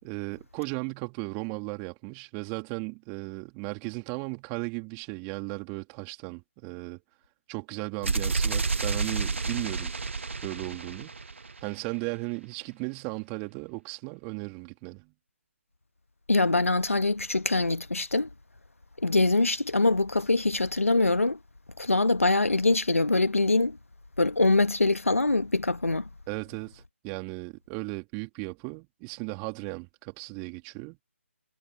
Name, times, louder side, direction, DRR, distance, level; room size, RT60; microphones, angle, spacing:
voice 1, 0.0-7.0 7.5-9.9 10.4-11.1 11.6-15.1 26.3-31.0, right 37 dB, 20° right, 3.5 m, -36 dB
sound 1, 8.0-11.9, right 4 dB, 60° right, 2.2 m, -30 dB
voice 2, 16.3-18.3 19.0-21.4 21.8-23.8 24.2-26.1, left 2 dB, 75° left, 1.7 m, -24 dB
figure-of-eight pair, 145°, 7 cm